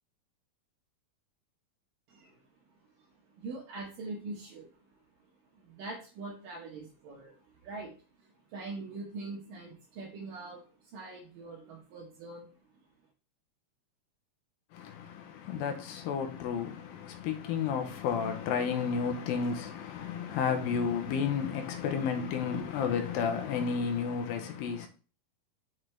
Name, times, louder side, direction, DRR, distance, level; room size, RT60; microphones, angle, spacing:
voice 1, 2.1-2.4 3.0-3.1 3.3-5.0 5.5-12.5, right 3 dB, 70° right, 2.5 m, -43 dB
voice 2, 14.7-24.9, left 6 dB, 80° left, 2.5 m, -32 dB
6.1 x 6.0 x 3.3 m
omnidirectional pair, 4.3 m